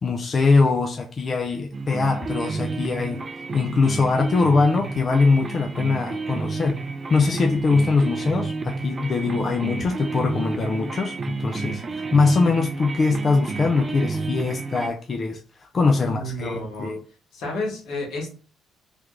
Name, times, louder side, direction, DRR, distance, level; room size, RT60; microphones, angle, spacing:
voice 1, 0.0-3.2 3.5-6.8 7.1-11.8 12.1-17.0, left 4 dB, 35° left, 0.4 m, -22 dB
sound 1, 1.7-14.9, right 4 dB, 35° right, 0.4 m, -31 dB
voice 2, 16.0-16.9 17.3-18.3, left 1 dB, 75° left, 1.6 m, -31 dB
3.3 x 2.4 x 3.1 m
cardioid pair, 100°, 0 cm